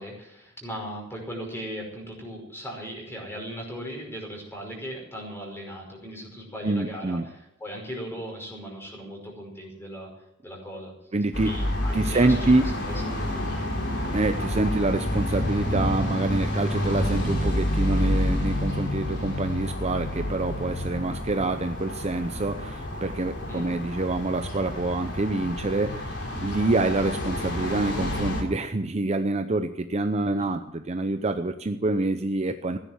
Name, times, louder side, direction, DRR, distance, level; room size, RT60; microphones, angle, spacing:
voice 1, 0.0-10.1 10.4-10.9 11.4-13.0 23.5-23.8 30.2-30.5, equal, 10° left, 0 dB, 5.4 m, -38 dB
voice 2, 6.6-7.3 11.1-11.5 11.9-12.6 14.1-32.8, right 2 dB, 30° right, 8 dB, 0.7 m, -26 dB
sound 1, 11.3-28.4, left 1 dB, 60° left, 3.5 m, -29 dB
15.5 x 10.5 x 7.4 m, 0.80 s
head